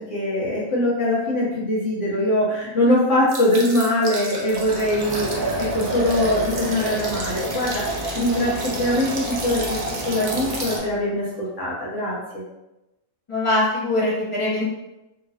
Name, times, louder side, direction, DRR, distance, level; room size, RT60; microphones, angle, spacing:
voice 1, 0.0-9.8 10.0-12.4, left 1 dB, 65° left, -6 dB, 1.2 m, -22 dB
sound 1, 3.3-10.8, right 3 dB, 55° right, 0.5 m, -30 dB
sound 2, 4.4-11.3, equal, 5° left, 1.2 m, -33 dB
voice 2, 13.3-14.6, left 1 dB, 30° left, -6 dB, 0.7 m, -22 dB
2.9 x 2.5 x 2.7 m, 0.95 s
omnidirectional pair, 1.4 m